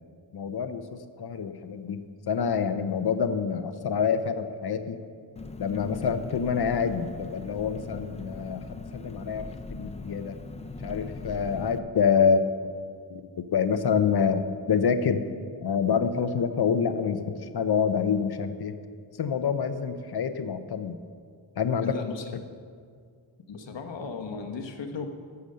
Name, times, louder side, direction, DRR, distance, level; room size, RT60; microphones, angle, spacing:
voice 1, 0.3-2.0 2.3-5.0 5.6-10.3 10.8-12.5 13.1-15.2 15.6-18.7 19.2-20.9 21.6-22.0 22.3-22.4, left 6 dB, 60° left, 10 dB, 0.7 m, -27 dB
Engine, 5.4-11.8, left 3 dB, 15° left, 0.4 m, -40 dB
voice 2, 21.8-22.4 23.5-25.1, left 4 dB, 75° left, 4 dB, 1.2 m, -36 dB
11.5 x 6.9 x 6.8 m, 2.2 s
wide cardioid pair, 170°, 44 cm